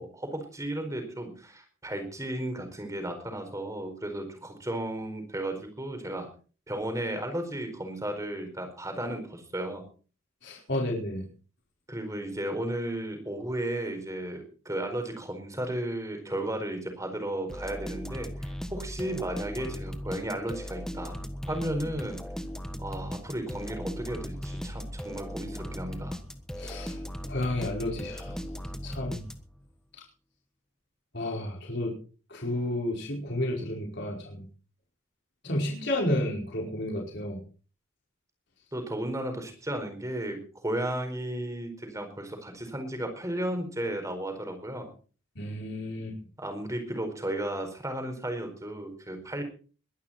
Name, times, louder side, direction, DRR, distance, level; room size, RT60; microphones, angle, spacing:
voice 1, 0.0-6.3 6.7-9.9 11.9-21.2 21.5-22.2 22.8-26.2 38.7-44.9 46.4-49.4, right 1 dB, 15° right, 6 dB, 4.6 m, -34 dB
voice 2, 10.4-11.3 26.6-27.0 27.2-28.3 28.8-29.2 31.1-31.9 32.3-34.4 35.4-37.4 45.4-46.1, left 1 dB, 55° left, -2 dB, 4.9 m, -31 dB
sound 1, 17.5-29.7, equal, 5° left, 1.4 m, -38 dB
22.0 x 11.5 x 4.3 m, 0.39 s
head